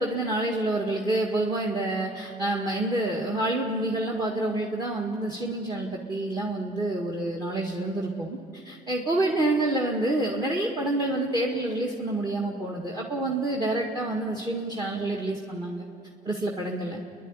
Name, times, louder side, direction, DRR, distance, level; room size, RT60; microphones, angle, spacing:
voice 1, 0.0-8.4 8.6-15.9 16.3-17.0, right 2 dB, 25° right, 0 dB, 2.0 m, -28 dB
28.5 x 11.0 x 9.8 m, 2.7 s
cardioid pair, 110°, 17 cm